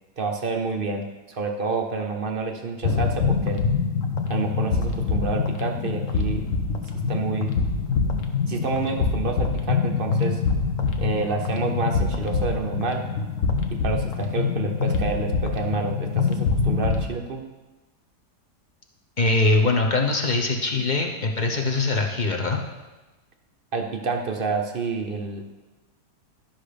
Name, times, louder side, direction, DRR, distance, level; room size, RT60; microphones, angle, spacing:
voice 1, 0.2-3.6 4.3-6.4 7.1-7.5 8.5-10.4 11.0-13.0 13.7-17.4 23.7-25.4, right 4 dB, 50° right, 4 dB, 0.7 m, -28 dB
sound 1, 2.8-17.1, left 5 dB, 55° left, 1.1 m, -25 dB
voice 2, 19.2-22.6, left 3 dB, 35° left, 1 dB, 0.7 m, -22 dB
11.5 x 6.0 x 5.0 m, 1.1 s
omnidirectional pair, 1.8 m